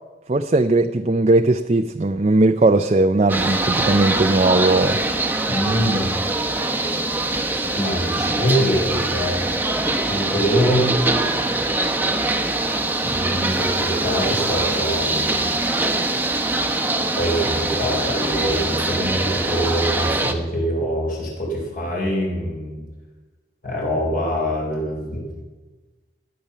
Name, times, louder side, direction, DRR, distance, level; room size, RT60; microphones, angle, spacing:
voice 1, 0.3-5.0, right 2 dB, 35° right, 7 dB, 0.5 m, -18 dB
sound 1, 3.3-20.3, right 2 dB, 10° right, 1.0 m, -23 dB
voice 2, 5.5-6.1 7.7-9.4 10.1-10.9 13.0-15.4 17.2-22.8 23.6-25.3, equal, 50° left, -2 dB, 3.9 m, -24 dB
16.0 x 10.5 x 6.8 m, 1.3 s
head